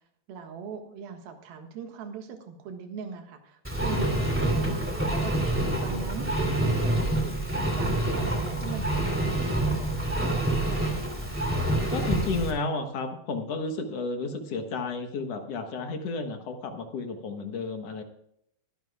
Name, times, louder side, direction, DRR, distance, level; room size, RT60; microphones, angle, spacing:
voice 1, 0.3-5.5 5.8-7.4 7.8-10.6, right 6 dB, 85° right, 4 dB, 3.4 m, -41 dB
Engine, 3.6-12.5, right 1 dB, 5° right, 1.8 m, -27 dB
voice 2, 11.9-18.0, left 3 dB, 60° left, 5 dB, 1.8 m, -32 dB
22.5 x 10.5 x 2.3 m, 0.74 s
omnidirectional pair, 4.2 m